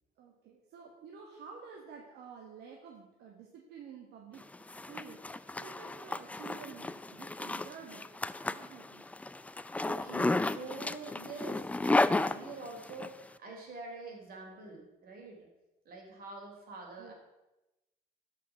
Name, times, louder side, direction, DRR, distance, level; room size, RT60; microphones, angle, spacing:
voice 1, 0.2-4.4 4.9-8.1 8.4-9.0 17.0-17.1, right 6 dB, 75° right, 0 dB, 1.6 m, -50 dB
Zipper (clothing), 4.4-13.1, left 2 dB, 10° left, 0.4 m, -33 dB
voice 2, 9.5-15.5 15.9-17.1, right 3 dB, 60° right, 1 dB, 3.5 m, -45 dB
12.5 x 5.8 x 5.8 m, 1.0 s
cardioid pair, 110°, 17 cm